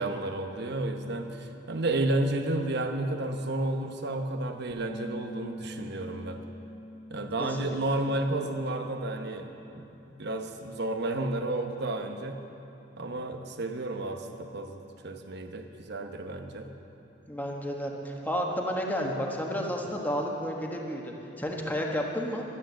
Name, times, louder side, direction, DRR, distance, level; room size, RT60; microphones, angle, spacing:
voice 1, 0.0-6.4 7.1-12.4 13.0-16.7 19.0-19.1, right 2 dB, 60° right, 5 dB, 0.9 m, -32 dB
Bass guitar, 4.7-9.0 9.3-10.9, equal, 30° right, 1.5 m, -46 dB
voice 2, 7.4-7.8 17.3-22.4, equal, 10° left, 0 dB, 1.3 m, -31 dB
11.5 x 9.8 x 7.6 m, 3.0 s
head